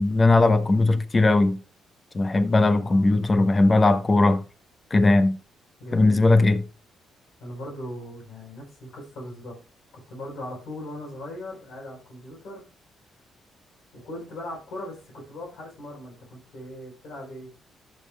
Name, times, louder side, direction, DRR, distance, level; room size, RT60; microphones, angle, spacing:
voice 1, 0.0-1.6 2.1-4.4 4.9-5.4 5.9-6.6, left 2 dB, 30° left, 0.9 m, -19 dB
voice 2, 2.8-3.3 5.8-6.3 7.4-9.6 9.9-12.7 13.9-17.5, left 1 dB, 70° left, 4.4 m, -39 dB
13.5 x 5.5 x 2.2 m
cardioid pair, 90°, 0 cm